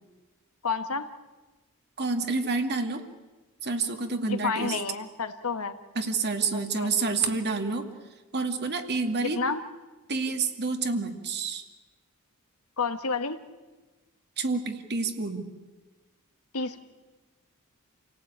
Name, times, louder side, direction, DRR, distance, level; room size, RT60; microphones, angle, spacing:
voice 1, 0.6-1.1 4.3-5.7 6.5-6.9 9.2-9.6 12.8-13.4 16.5-16.8, left 4 dB, 75° left, 9 dB, 1.5 m, -30 dB
voice 2, 2.0-3.0 3.6-4.8 6.0-7.9 8.3-9.4 10.1-11.6 14.4-15.5, right 4 dB, 50° right, 6 dB, 2.3 m, -28 dB
28.5 x 18.0 x 8.8 m, 1.2 s
head